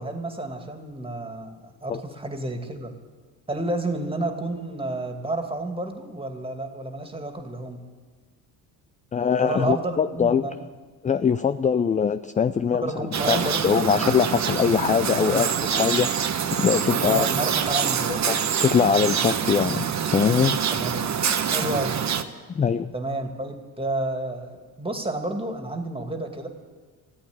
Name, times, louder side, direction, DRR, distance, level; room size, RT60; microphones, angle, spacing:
voice 1, 0.0-2.9 3.5-7.8 9.4-10.5 12.7-13.8 15.3-15.5 17.0-18.2 20.7-21.0 21.5-22.0 22.9-26.5, right 2 dB, 10° right, 5 dB, 2.4 m, -30 dB
voice 2, 9.1-10.5 11.0-16.3 16.6-17.3 18.1-20.6 22.5-22.9, left 7 dB, 20° left, 12 dB, 0.4 m, -22 dB
sound 1, 13.1-22.2, right 7 dB, 40° right, 1.1 m, -25 dB
14.5 x 8.5 x 9.9 m, 1.5 s
supercardioid pair, 65°, 43 cm